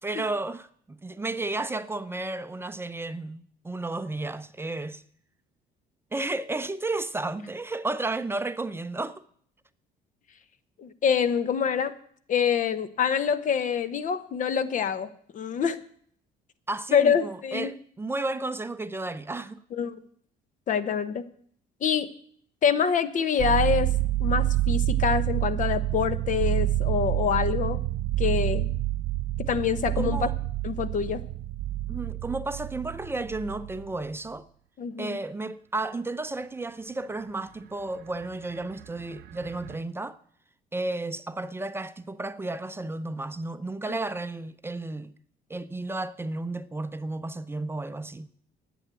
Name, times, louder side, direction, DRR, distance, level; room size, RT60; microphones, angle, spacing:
voice 1, 0.0-5.0 6.1-9.2 16.7-19.6 30.0-30.3 31.9-34.5 35.0-40.2 40.7-45.1 45.5-48.3, right 2 dB, 15° right, 0.5 m, -33 dB
voice 2, 10.8-11.9 12.3-15.8 16.9-17.7 19.7-20.0 20.7-21.3 21.8-22.1 22.6-23.9 24.2-27.8 28.2-28.7 29.4-30.3 30.6-31.2 34.8-35.2 43.9-44.0, left 7 dB, 50° left, 0.9 m, -26 dB
sound 1, 23.4-34.1 38.2-38.3 38.5-39.8, right 15 dB, 80° right, 0.6 m, -28 dB
10.5 x 7.9 x 8.9 m
cardioid pair, 110°, 17 cm